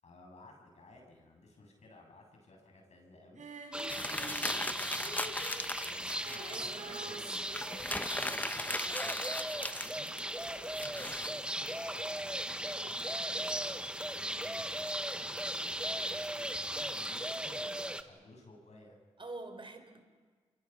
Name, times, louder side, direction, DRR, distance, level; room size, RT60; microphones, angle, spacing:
voice 1, 0.0-5.2 5.9-7.7 8.0-10.1 10.5-14.9 15.6-19.0, left 2 dB, 65° left, 2 dB, 7.7 m, -57 dB
Female singing, 3.4-10.0 10.3-10.4, right 3 dB, 85° right, 4.3 m, -50 dB
sound 1, 3.7-18.0, right 1 dB, 10° right, 1.5 m, -37 dB
sound 2, 3.9-6.6 7.0-7.1 7.4-11.3, left 1 dB, 15° left, 1.0 m, -38 dB
voice 2, 6.5-7.4 19.2-20.0, right 2 dB, 45° right, 7 dB, 4.3 m, -47 dB
28.0 x 24.0 x 5.8 m, 1.5 s
cardioid pair, 50°, 12 cm